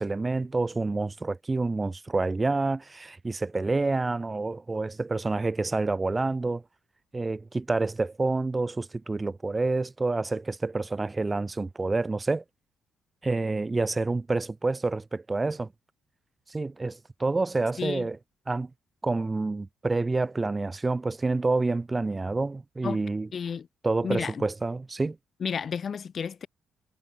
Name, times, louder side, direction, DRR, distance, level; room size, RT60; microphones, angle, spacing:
voice 1, 0.0-6.6 7.1-12.4 13.2-15.7 16.5-18.2 18.5-18.7 19.0-23.3 23.8-25.2, right 3 dB, 20° right, 0.7 m, -28 dB
voice 2, 17.8-18.1 22.8-23.0 23.3-23.7 24.0-24.4 25.4-26.5, left 6 dB, 50° left, 3.7 m, -32 dB
cardioid pair, 90°, 0 cm